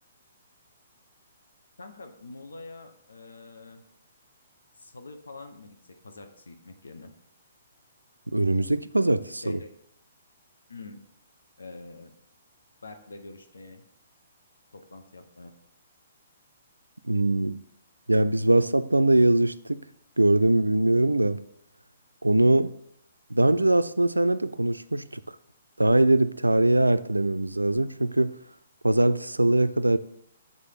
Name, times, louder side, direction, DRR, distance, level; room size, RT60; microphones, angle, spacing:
voice 1, 1.8-3.8 4.8-7.1 9.4-9.7 10.7-11.0 11.6-12.1 12.8-13.8 14.7-15.5, left 3 dB, 75° left, 6 dB, 0.8 m, -45 dB
voice 2, 8.3-9.6 17.0-17.6 18.1-19.8 20.2-21.4 22.2-22.7 23.3-25.2 25.8-28.3 28.8-30.0, right 1 dB, 90° right, 13 dB, 0.3 m, -22 dB
4.9 x 4.0 x 5.6 m, 0.71 s
figure-of-eight pair, 125°, 0 cm